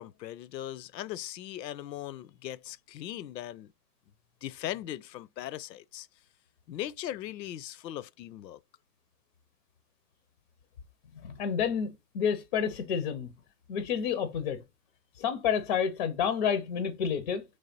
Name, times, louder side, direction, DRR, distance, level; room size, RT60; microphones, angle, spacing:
voice 1, 0.0-3.7 4.4-6.1 6.7-8.6, left 12 dB, 85° left, 0.5 m, -39 dB
voice 2, 11.2-13.3 13.7-14.6 15.2-17.4, left 7 dB, 35° left, 0.4 m, -29 dB
3.4 x 3.2 x 3.9 m
hypercardioid pair, 135°, 49 cm